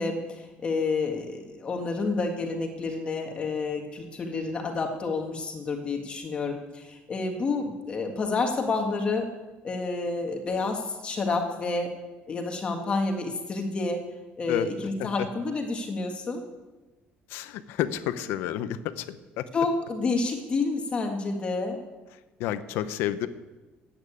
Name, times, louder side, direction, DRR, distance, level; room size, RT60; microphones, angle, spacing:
voice 1, 0.0-9.3 9.6-11.9 12.3-14.0 14.4-16.4 19.5-21.8, left 3 dB, 30° left, 3 dB, 1.7 m, -29 dB
voice 2, 17.3-19.5 22.4-23.3, left 12 dB, 80° left, 11 dB, 0.8 m, -30 dB
14.0 x 9.0 x 8.5 m, 1.1 s
cardioid pair, 155°, 4 cm